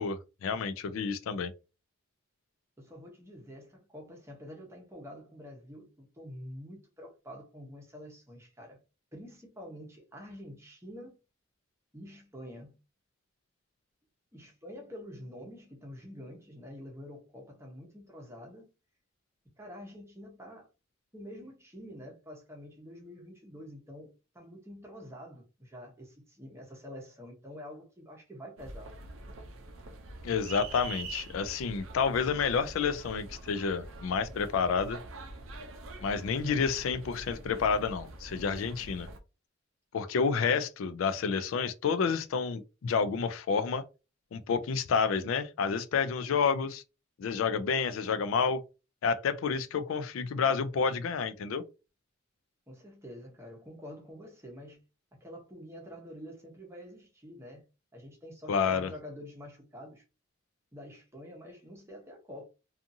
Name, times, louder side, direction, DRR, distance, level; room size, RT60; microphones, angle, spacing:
voice 1, 0.0-1.5 30.2-35.0 36.0-39.1 39.9-43.8 44.3-46.8 47.2-48.6 49.0-51.6 58.5-58.9, left 5 dB, 85° left, 0.4 m, -29 dB
voice 2, 2.8-8.8 9.1-11.2 11.9-12.8 14.3-18.7 19.6-20.7 21.1-24.1 24.3-28.9 52.7-54.8 55.1-57.6 57.9-60.0 60.7-62.4, equal, 15° right, 0.8 m, -47 dB
sound 1, 28.6-39.2, right 2 dB, 85° right, 0.5 m, -45 dB
2.6 x 2.4 x 2.6 m
head